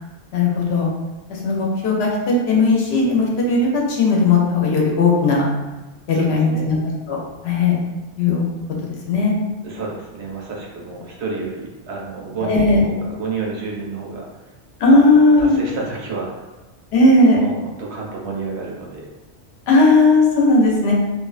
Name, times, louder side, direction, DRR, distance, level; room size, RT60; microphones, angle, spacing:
voice 1, 0.3-0.9 1.3-5.4 6.1-6.8 7.1-7.2 7.4-7.8 8.2-8.4 9.1-9.3 12.4-12.8 14.8-15.6 16.9-17.4 19.7-20.9, left 3 dB, 70° left, -2 dB, 0.8 m, -16 dB
voice 2, 6.1-6.7 9.6-14.3 14.9-16.4 17.4-19.1, right 4 dB, 70° right, -2 dB, 0.8 m, -30 dB
2.4 x 2.2 x 2.3 m, 1.1 s
omnidirectional pair, 1.2 m